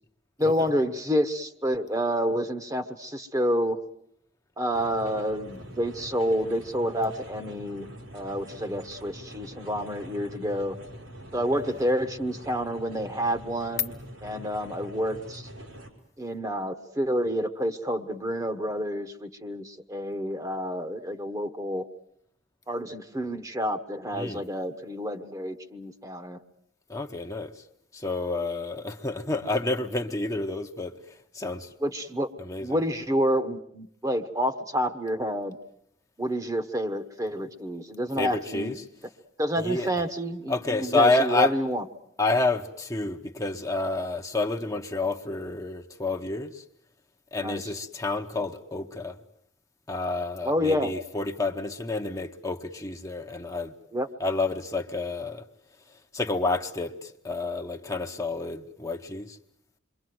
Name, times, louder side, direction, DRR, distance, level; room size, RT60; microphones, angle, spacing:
voice 1, 0.4-3.8 4.6-7.9 8.1-10.7 11.3-13.9 14.2-15.5 16.2-21.8 22.7-26.4 31.8-32.3 32.6-35.6 36.2-38.7 39.4-41.8 47.4-47.7 50.4-50.9 53.9-54.1, equal, 15° right, 1.2 m, -28 dB
sound 1, 4.7-15.9, equal, 90° right, 5.1 m, -44 dB
voice 2, 26.9-27.5 27.9-30.9 31.3-31.7 32.4-32.7 38.2-38.7 39.6-39.9 40.5-41.5 42.2-46.6 47.3-49.1 49.9-53.7 54.2-55.4 56.1-59.4, left 2 dB, 15° left, 1.0 m, -29 dB
28.0 x 23.5 x 7.8 m
head